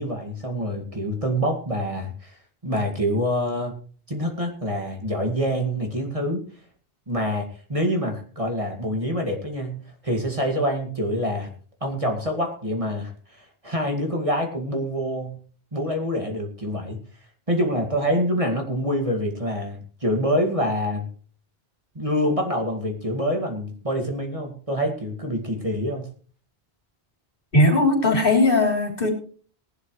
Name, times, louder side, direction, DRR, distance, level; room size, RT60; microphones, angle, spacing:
voice 1, 0.0-2.4 2.6-3.7 4.1-6.4 7.1-11.5 11.8-15.4 15.7-17.0 17.5-21.1 22.0-26.1, equal, 30° right, 2 dB, 2.2 m, -26 dB
voice 2, 27.5-29.1, left 2 dB, 55° left, 3 dB, 3.6 m, -18 dB
19.0 x 11.5 x 3.2 m, 0.42 s
omnidirectional pair, 1.1 m